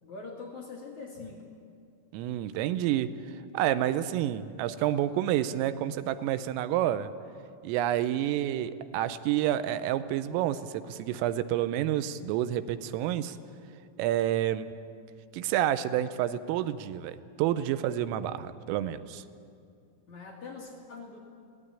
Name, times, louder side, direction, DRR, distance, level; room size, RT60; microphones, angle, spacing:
voice 1, 0.0-1.4 20.1-21.2, left 4 dB, 50° left, -2 dB, 2.6 m, -43 dB
voice 2, 2.1-3.1 3.5-7.1 7.6-13.4 14.0-14.7 15.3-19.2, right 12 dB, 90° right, 13 dB, 3.4 m, -29 dB
21.0 x 17.5 x 9.8 m, 2.3 s
omnidirectional pair, 5.9 m